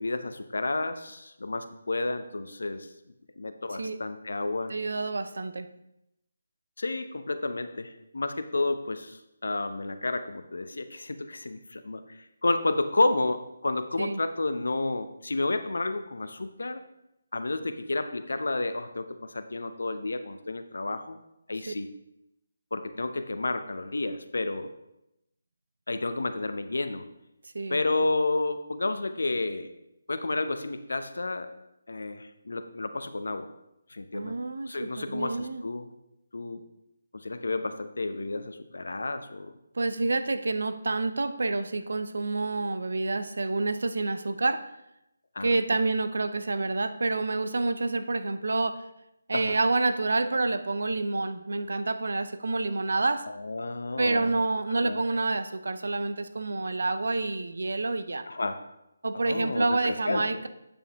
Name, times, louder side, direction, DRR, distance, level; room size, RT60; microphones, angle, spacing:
voice 1, 0.0-2.9 3.4-4.7 6.8-12.0 12.4-16.8 17.3-21.2 21.5-21.9 22.7-24.7 25.9-27.0 27.7-29.7 30.1-31.5 31.9-33.5 33.9-34.4 34.7-35.9 36.3-36.6 37.1-39.5 45.4-45.5 49.3-49.6 53.4-54.4 54.8-55.0 58.3-58.6 59.1-60.2, left 2 dB, 80° left, 9 dB, 0.8 m, -31 dB
voice 2, 4.7-5.7 14.0-14.2 21.7-21.8 27.5-27.8 34.1-35.6 39.7-44.6 45.4-48.8 49.3-53.2 54.0-58.3 59.0-60.5, right 3 dB, 75° right, 11 dB, 0.6 m, -28 dB
9.0 x 7.1 x 3.5 m, 0.86 s
figure-of-eight pair, 160°, 0 cm